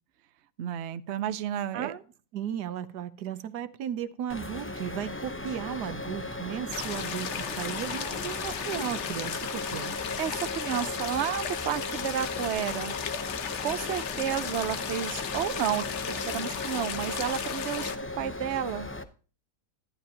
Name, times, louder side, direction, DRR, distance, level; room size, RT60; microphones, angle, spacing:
voice 1, 0.6-1.9 10.2-12.9 13.6-18.9, right 10 dB, 60° right, 0.8 m, -31 dB
voice 2, 2.3-9.9, right 9 dB, 80° right, 1.3 m, -35 dB
sound 1, 4.3-19.0, left 2 dB, 20° left, 0.3 m, -38 dB
sound 2, 6.7-18.0, left 8 dB, 55° left, 1.0 m, -35 dB
12.0 x 11.0 x 2.8 m
omnidirectional pair, 1.7 m